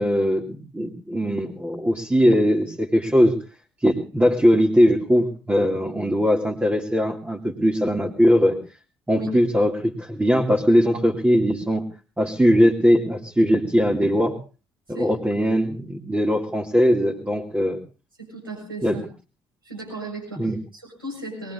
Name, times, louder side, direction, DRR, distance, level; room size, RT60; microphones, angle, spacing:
voice 1, 0.0-3.3 3.8-8.6 9.1-11.8 12.2-14.4 15.0-17.8 18.8-19.0 20.4-20.6, equal, 15° right, -1 dB, 2.6 m, -20 dB
voice 2, 18.2-19.0 19.6-21.5, right 3 dB, 90° right, -4 dB, 6.3 m, -35 dB
22.5 x 20.5 x 2.7 m, 0.35 s
figure-of-eight pair, 45°, 12 cm